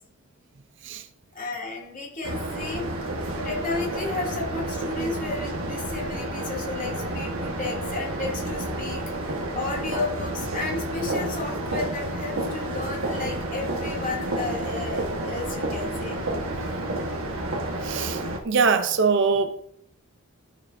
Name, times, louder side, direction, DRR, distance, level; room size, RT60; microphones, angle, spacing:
voice 1, 1.3-2.9 3.4-9.0 9.5-16.2, left 3 dB, 40° left, 2.7 m, -33 dB
sound 1, 2.2-18.4, right 1 dB, 80° right, 1.5 m, -30 dB
voice 2, 8.8-9.3 17.8-19.6, right 5 dB, 60° right, 0.6 m, -24 dB
12.5 x 6.9 x 2.7 m
head